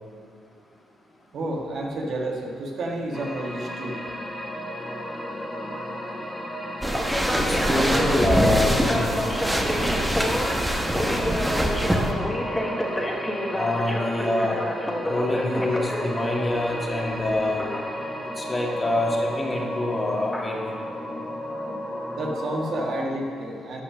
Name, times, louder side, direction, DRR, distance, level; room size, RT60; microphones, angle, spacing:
voice 1, 1.3-4.0 22.2-23.8, right 1 dB, 60° right, 0 dB, 1.6 m, -30 dB
sound 1, 3.1-23.1, equal, 10° left, 1.4 m, -30 dB
sound 2, 6.8-12.1, right 1 dB, 10° right, 1.1 m, -24 dB
voice 2, 7.4-9.2 13.5-14.6 15.1-17.6 18.4-20.8, left 1 dB, 25° left, -1 dB, 1.9 m, -26 dB
12.0 x 5.7 x 6.2 m, 2.2 s
cardioid pair, 90°, 0 cm